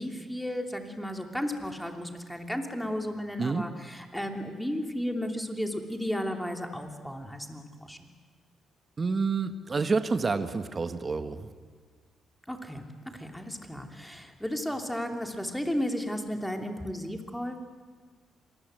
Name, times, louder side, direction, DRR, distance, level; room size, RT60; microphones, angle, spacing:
voice 1, 0.0-8.1 12.5-17.6, equal, 5° left, 4 dB, 3.0 m, -34 dB
voice 2, 9.0-11.5, right 4 dB, 35° right, 9 dB, 1.4 m, -28 dB
26.0 x 20.0 x 8.1 m, 1.6 s
cardioid pair, 90°, 0 cm